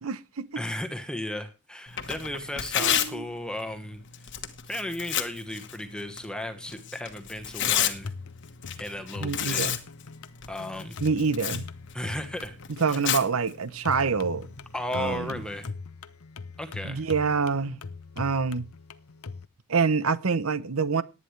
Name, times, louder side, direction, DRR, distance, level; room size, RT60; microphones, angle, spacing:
voice 1, 0.0-0.5 2.8-3.2 9.2-9.8 11.0-11.6 12.8-14.5 14.9-15.3 16.8-17.8 18.2-18.7 19.7-21.0, right 5 dB, 65° right, 0.8 m, -26 dB
voice 2, 0.6-4.0 4.7-8.1 8.8-9.7 10.5-11.0 11.9-12.5 14.7-15.7 16.6-17.0, left 1 dB, 5° left, 1.2 m, -35 dB
Tearing, 1.9-15.7, left 10 dB, 55° left, 1.3 m, -33 dB
sound 1, 7.9-19.4, left 4 dB, 75° left, 0.8 m, -42 dB
18.5 x 9.7 x 3.3 m
head